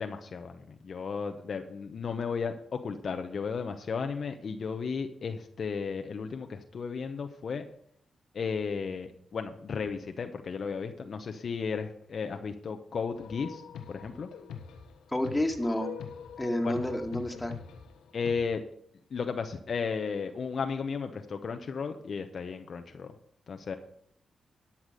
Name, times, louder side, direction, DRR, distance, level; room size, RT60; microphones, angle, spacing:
voice 1, 0.0-7.6 8.3-13.6 13.9-14.3 16.6-16.8 18.1-18.6 19.1-23.1 23.5-23.8, left 5 dB, 60° left, 6 dB, 0.9 m, -34 dB
sound 1, 13.1-18.4, left 7 dB, 90° left, 1.2 m, -43 dB
voice 2, 15.1-15.9 16.4-17.5, left 1 dB, 15° left, 4 dB, 2.0 m, -29 dB
12.5 x 5.9 x 6.6 m, 0.66 s
supercardioid pair, 50°, 0 cm